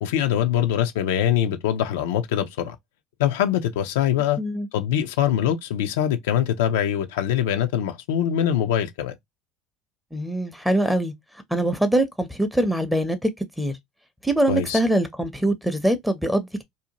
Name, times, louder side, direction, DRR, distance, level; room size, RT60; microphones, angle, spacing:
voice 1, 0.0-2.8 3.2-4.4 4.7-9.1 14.5-14.8, left 10 dB, 85° left, 0.4 m, -23 dB
voice 2, 4.4-4.7 10.1-11.1 11.5-13.3 13.6-13.7 14.2-16.6, right 1 dB, 5° right, 0.6 m, -23 dB
2.6 x 2.1 x 2.8 m
hypercardioid pair, 85°, 0 cm